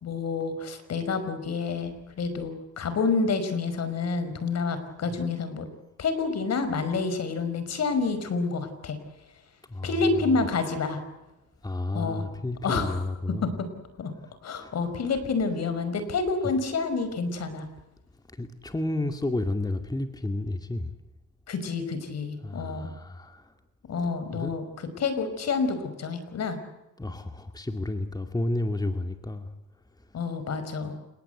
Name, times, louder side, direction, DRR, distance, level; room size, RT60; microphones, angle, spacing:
voice 1, 0.0-5.7 6.0-9.0 9.8-11.0 11.9-12.2 12.6-12.9 14.0-14.1 14.4-17.7 21.5-22.9 23.9-24.6 25.0-26.6 30.1-31.0, left 4 dB, 60° left, 10 dB, 5.3 m, -28 dB
voice 2, 9.7-10.4 11.6-13.5 14.5-14.7 15.1-15.2 18.3-20.9 22.4-23.5 24.0-24.6 27.0-29.5 30.0-30.2, left 2 dB, 15° left, 6 dB, 2.3 m, -31 dB
29.5 x 19.0 x 8.1 m, 0.99 s
cardioid pair, 90°, 30 cm